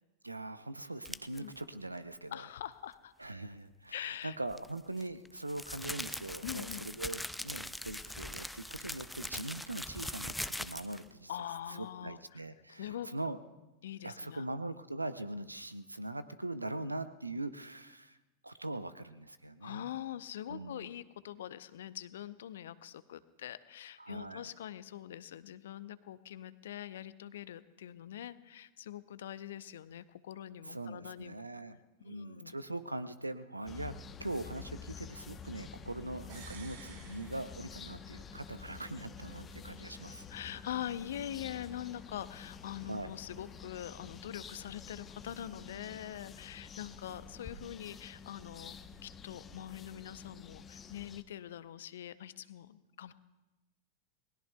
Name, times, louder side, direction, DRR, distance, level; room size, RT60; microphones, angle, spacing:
voice 1, 0.2-2.4 3.2-11.3 11.7-13.4 14.0-18.2 18.4-19.9 20.5-20.9 24.0-24.5 30.6-31.8 32.0-33.9 34.2-40.3 42.9-43.1, right 2 dB, 85° right, 14 dB, 0.7 m, -41 dB
sound 1, 1.1-1.4 4.5-11.1, left 1 dB, 5° left, 0.5 m, -41 dB
voice 2, 2.3-3.1 3.9-4.4 6.4-6.8 11.3-12.4 12.7-13.1 13.8-14.4 19.6-31.4 32.0-32.5 40.3-48.7 49.0-53.1, left 11 dB, 60° left, 15 dB, 0.7 m, -43 dB
sound 2, 33.6-51.2, left 6 dB, 25° left, 0.9 m, -49 dB
sound 3, 36.3-38.2 38.5-38.6, right 6 dB, 55° right, 1.9 m, -54 dB
29.5 x 20.0 x 2.3 m, 1.1 s
figure-of-eight pair, 90°, 0 cm